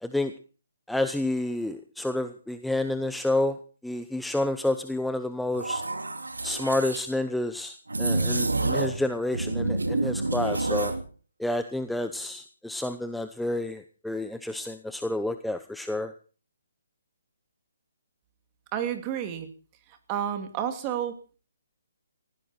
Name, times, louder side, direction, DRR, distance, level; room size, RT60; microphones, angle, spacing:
voice 1, 0.0-0.3 0.9-3.6 3.8-5.8 6.4-10.9 11.4-16.1, left 1 dB, ahead, 9 dB, 0.8 m, -29 dB
sound 1, 5.5-7.0 7.9-9.0 9.3-11.0, right 2 dB, 85° right, 2.5 m, -28 dB
voice 2, 18.7-19.5 20.1-21.4, right 9 dB, 25° right, 7 dB, 2.6 m, -30 dB
19.0 x 16.0 x 4.4 m, 0.39 s
figure-of-eight pair, 140°, 0 cm